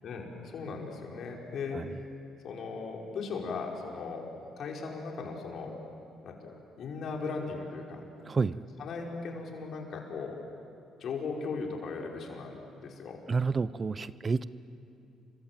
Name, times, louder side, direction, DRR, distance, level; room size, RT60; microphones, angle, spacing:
voice 1, 0.0-1.9 2.4-4.3 4.6-5.7 6.2-8.0 8.8-10.4 11.0-13.2, left 4 dB, 65° left, 0 dB, 5.2 m, -38 dB
voice 2, 8.3-8.6 13.3-14.4, right 4 dB, 35° right, 16 dB, 0.8 m, -29 dB
29.5 x 24.5 x 7.7 m, 2.6 s
supercardioid pair, 75°, 0 cm